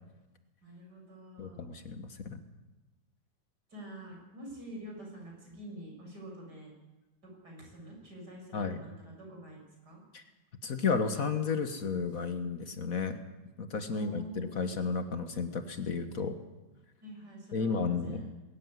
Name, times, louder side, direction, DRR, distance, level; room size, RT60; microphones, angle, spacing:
voice 1, 0.6-1.8 3.7-6.7 7.2-10.0 13.9-14.7 17.0-18.3, right 1 dB, 70° right, 0 dB, 7.1 m, -47 dB
voice 2, 1.4-2.4 8.5-8.8 10.1-10.2 10.6-13.2 13.6-16.4 17.5-18.2, left 5 dB, 55° left, 8 dB, 1.6 m, -32 dB
21.0 x 14.0 x 9.5 m, 1.1 s
omnidirectional pair, 1.9 m